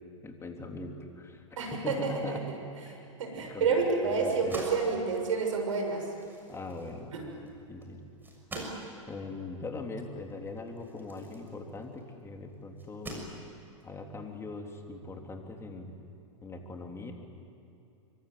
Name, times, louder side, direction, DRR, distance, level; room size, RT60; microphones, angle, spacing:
voice 1, 0.2-1.4 1.7-2.5 2.9-3.0 3.3-4.6 6.5-7.1 7.4-8.0 9.1-13.3 13.8-16.0 16.4-17.1, left 3 dB, 15° left, 3 dB, 3.5 m, -41 dB
voice 2, 1.6-2.4 3.2-6.1 7.1-7.2 8.5-8.7, right 5 dB, 75° right, 3 dB, 6.9 m, -29 dB
sound 1, 4.1-12.1 12.8-13.8, right 1 dB, 10° right, 6.4 m, -46 dB
25.0 x 24.5 x 9.5 m, 2.7 s
hypercardioid pair, 105°, 17 cm